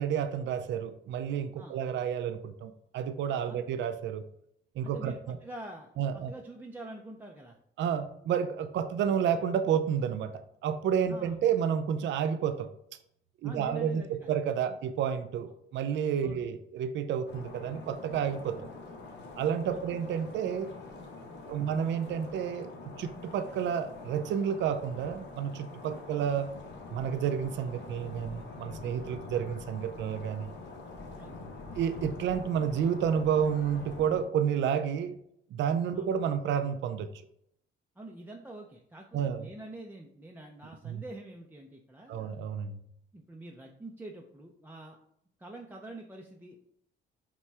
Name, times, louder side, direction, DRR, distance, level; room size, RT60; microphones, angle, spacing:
voice 1, 0.0-4.2 4.8-5.4 6.0-6.3 7.8-12.7 13.4-18.6 19.4-20.7 21.4-26.5 26.9-30.5 31.8-35.1 35.5-37.1 39.1-39.5 40.8-41.0 42.1-42.8, right 8 dB, 65° right, 9 dB, 0.4 m, -30 dB
voice 2, 4.8-7.6 11.1-11.3 13.4-14.4 16.2-16.5 19.7-19.8 21.6-21.7 25.9-26.0 31.2-31.4 35.9-36.1 38.0-42.4 43.1-45.0 45.4-46.6, right 2 dB, 10° right, 0 dB, 0.4 m, -46 dB
sound 1, 17.3-34.2, left 3 dB, 65° left, 0.8 m, -45 dB
5.7 x 2.2 x 3.3 m, 0.72 s
cardioid pair, 90°, 20 cm